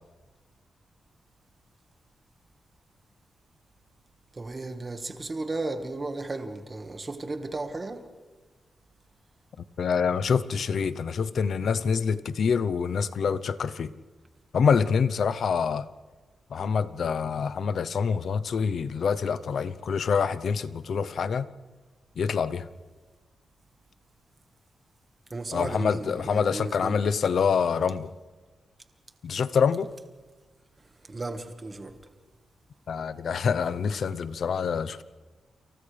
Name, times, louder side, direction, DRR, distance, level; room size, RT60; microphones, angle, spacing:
voice 1, 4.3-8.0 25.3-27.0 31.1-32.0, right 2 dB, 25° right, 1.6 m, -34 dB
voice 2, 9.8-13.9 14.5-15.9 16.5-21.5 22.2-22.7 25.5-28.1 29.2-29.9 32.9-35.0, left 6 dB, 60° left, 0.7 m, -26 dB
29.5 x 27.5 x 3.4 m
wide cardioid pair, 160°, 0 cm